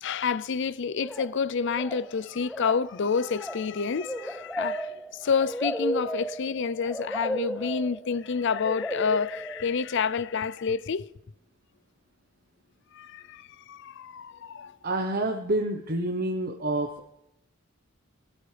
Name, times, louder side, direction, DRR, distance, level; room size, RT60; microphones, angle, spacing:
voice 1, 0.0-4.9 5.2-11.0 12.9-14.8, left 5 dB, 60° left, 0.5 m, -29 dB
sound 1, 1.0-1.4 1.7-2.1 2.4-10.0, equal, 5° left, 0.4 m, -34 dB
voice 2, 14.8-17.1, right 1 dB, 45° right, 1.0 m, -28 dB
21.0 x 13.0 x 3.4 m
head